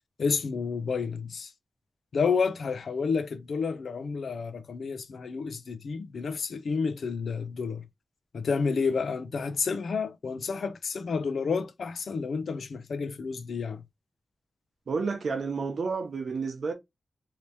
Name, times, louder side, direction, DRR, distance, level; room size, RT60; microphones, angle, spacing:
voice 1, 0.2-1.5 2.1-7.9 8.3-13.8, left 5 dB, 80° left, 0.6 m, -30 dB
voice 2, 14.9-16.7, right 4 dB, 65° right, 0.8 m, -30 dB
3.3 x 2.8 x 2.9 m
wide cardioid pair, 175°, 0 cm